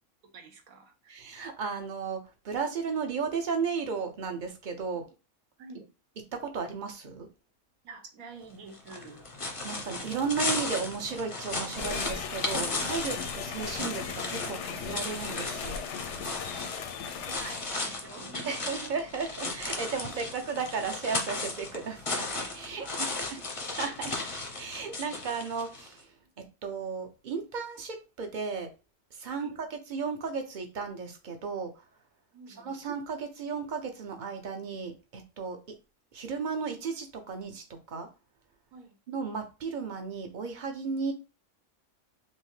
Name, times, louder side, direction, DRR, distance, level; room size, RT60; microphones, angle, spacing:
voice 1, 0.2-1.2 5.6-5.9 7.8-9.3 17.3-18.9 20.1-20.2 22.8-23.4 23.7-23.8 26.2-26.3 29.3-29.5 32.3-32.8 38.7-39.0, right 4 dB, 80° right, 1.3 m, -48 dB
voice 2, 1.1-5.1 6.3-7.3 9.6-15.8 18.4-23.4 23.7-24.2 24.6-26.1 26.4-28.7 29.1-31.7 32.6-35.8 36.1-38.1 39.1-41.1, right 5 dB, 45° right, 0.7 m, -35 dB
sound 1, 8.7-25.9, left 3 dB, 35° left, 0.5 m, -36 dB
sound 2, 11.8-17.8, left 7 dB, 65° left, 0.8 m, -37 dB
5.6 x 2.1 x 3.1 m
omnidirectional pair, 1.5 m